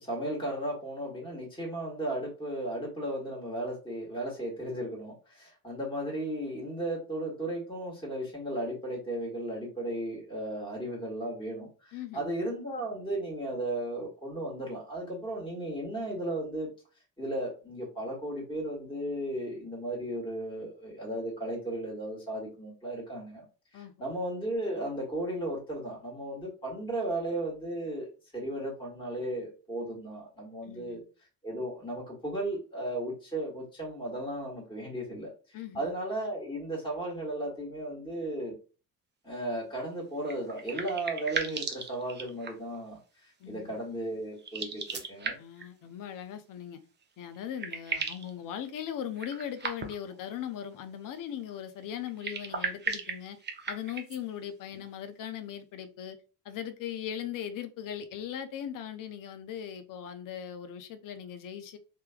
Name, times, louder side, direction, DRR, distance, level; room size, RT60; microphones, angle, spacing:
voice 1, 0.0-16.7 17.2-23.4 23.7-31.0 31.4-38.5 39.2-45.4, right 1 dB, 10° left, 1.6 m, -35 dB
voice 2, 11.9-12.3 23.7-23.9 30.6-31.0 35.5-35.9 43.4-43.8 45.4-46.8 47.2-53.4 53.7-56.2 56.4-61.8, left 9 dB, 45° left, 0.7 m, -39 dB
sound 1, 40.2-42.8 44.4-45.7 47.0-47.1 47.3-48.3 49.2-50.1 52.1-54.2, right 5 dB, 20° right, 0.7 m, -36 dB
3.4 x 3.0 x 2.3 m
figure-of-eight pair, 50°, 48 cm